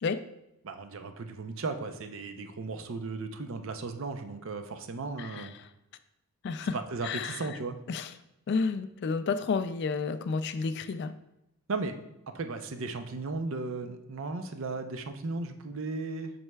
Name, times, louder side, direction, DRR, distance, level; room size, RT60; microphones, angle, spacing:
voice 1, 0.6-5.5 6.7-7.8 11.7-12.0 12.3-16.3, right 3 dB, 60° right, 7 dB, 0.5 m, -36 dB
voice 2, 5.2-5.5 6.4-6.8 7.0-7.4 7.9-8.1 8.5-11.1, left 4 dB, 50° left, 12 dB, 0.3 m, -31 dB
7.8 x 5.4 x 2.2 m, 0.88 s
head